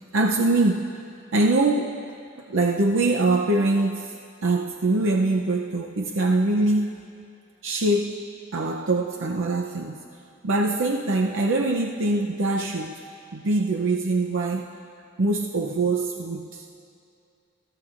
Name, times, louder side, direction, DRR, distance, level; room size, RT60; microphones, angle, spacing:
voice 1, 0.1-0.9 1.3-2.0 2.4-4.1 4.4-6.9 7.6-10.0 10.4-13.0 13.3-14.7 15.2-16.7, right 2 dB, 65° right, 2 dB, 0.6 m, -23 dB
29.5 x 15.0 x 2.5 m, 2.5 s
head